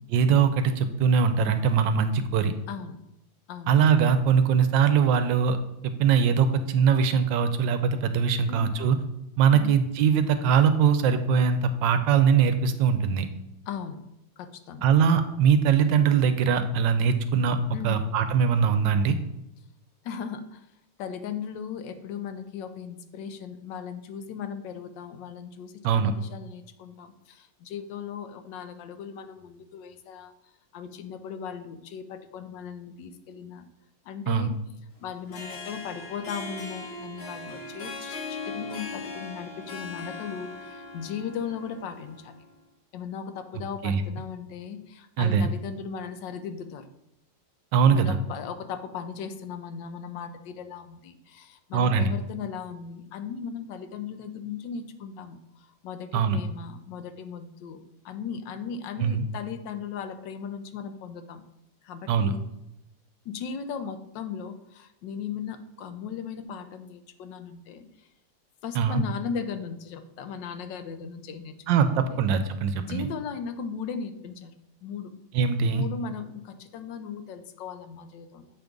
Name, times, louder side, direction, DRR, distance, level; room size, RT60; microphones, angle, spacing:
voice 1, 0.1-2.5 3.7-5.6 5.8-9.0 9.4-13.3 14.8-17.6 17.8-19.2 25.8-26.1 34.3-34.5 43.8-44.0 45.2-45.5 47.7-48.2 51.7-52.1 56.1-56.4 59.0-59.2 62.1-62.3 68.7-69.0 71.7-73.0 75.3-75.8, right 6 dB, 85° right, 9 dB, 1.3 m, -22 dB
voice 2, 2.7-3.0 3.5-3.8 8.5-8.7 9.5-9.7 13.7-14.0 14.4-14.9 17.7-18.0 20.0-20.6 21.0-30.3 30.7-33.6 34.0-34.5 35.0-42.3 42.9-46.9 47.9-55.4 55.8-61.4 61.8-62.4 63.2-67.8 68.6-71.6 72.1-72.2 72.8-74.5 74.8-75.1 75.7-78.5, left 6 dB, 75° left, 9 dB, 1.3 m, -37 dB
Harp, 35.1-42.5, left 3 dB, 50° left, 0.8 m, -39 dB
7.7 x 5.2 x 3.5 m, 0.87 s
omnidirectional pair, 2.0 m